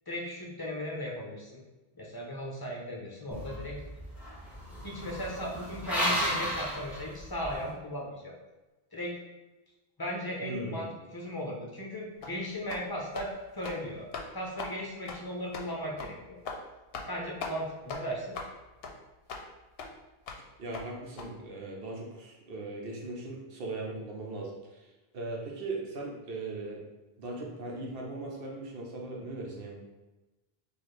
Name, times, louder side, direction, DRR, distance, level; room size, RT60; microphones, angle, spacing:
voice 1, 0.1-1.6 1.9-3.8 4.8-8.3 8.9-9.1 10.0-13.3 13.5-16.4 17.1-18.4, equal, 25° left, -3 dB, 0.6 m, -37 dB
sound 1, 3.3-7.7, equal, ahead, 0.9 m, -34 dB
voice 2, 10.4-10.9 20.6-26.8 27.2-29.7, right 2 dB, 65° right, -1 dB, 1.0 m, -39 dB
sound 2, 12.2-12.4 12.7-12.9 13.1-13.3 13.6-13.8 14.1-14.3 14.6-14.7 15.1-15.2 15.5-15.7 16.0-16.1 16.5-16.6 16.9-17.1 17.4-17.6 17.9-18.0 18.3-18.5 18.8-18.9 19.3-19.4 19.8-19.9 20.3-20.4 20.7-20.9 21.2-21.3, left 4 dB, 70° left, 0.8 m, -39 dB
4.5 x 2.4 x 3.2 m, 1.1 s
omnidirectional pair, 1.0 m